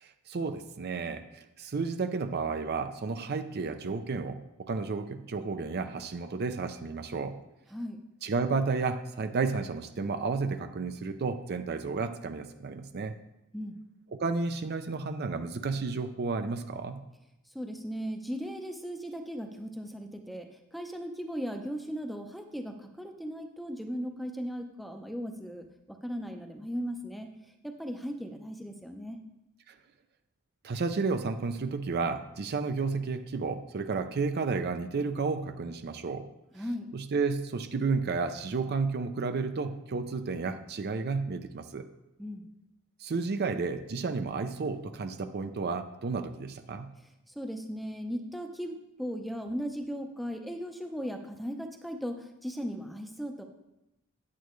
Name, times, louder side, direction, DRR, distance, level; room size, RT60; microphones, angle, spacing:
voice 1, 0.0-7.4 8.2-13.1 14.1-17.0 29.7-29.8 30.6-36.3 36.9-41.8 43.0-46.9, right 4 dB, 45° right, 8 dB, 0.5 m, -32 dB
voice 2, 7.7-8.0 13.5-13.8 17.5-27.3 27.6-29.2 36.5-36.9 42.2-42.5 47.4-53.4, equal, ahead, 4 dB, 0.6 m, -37 dB
9.2 x 8.4 x 3.1 m, 0.91 s
head